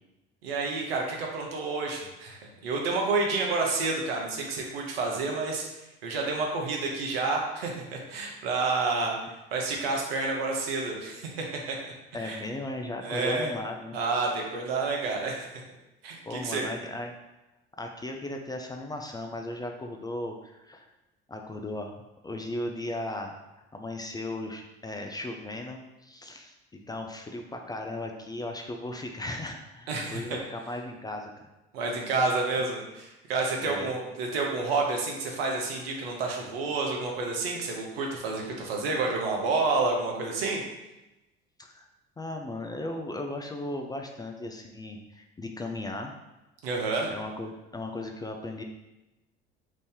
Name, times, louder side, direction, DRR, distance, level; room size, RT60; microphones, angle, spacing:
voice 1, 0.4-5.6 6.0-9.1 9.5-11.9 12.2-12.4 13.0-13.5 13.9-15.5 16.0-16.7 29.9-30.2 31.7-40.6 46.6-47.1, right 3 dB, 80° right, 0 dB, 0.8 m, -29 dB
voice 2, 12.1-14.0 16.2-17.1 17.8-20.9 21.3-21.9 22.2-23.3 23.7-31.3 33.6-33.9 41.6-41.9 42.2-46.1 47.1-48.6, left 2 dB, 15° left, 3 dB, 0.3 m, -36 dB
3.1 x 2.6 x 3.6 m, 1.0 s
hypercardioid pair, 60°, 29 cm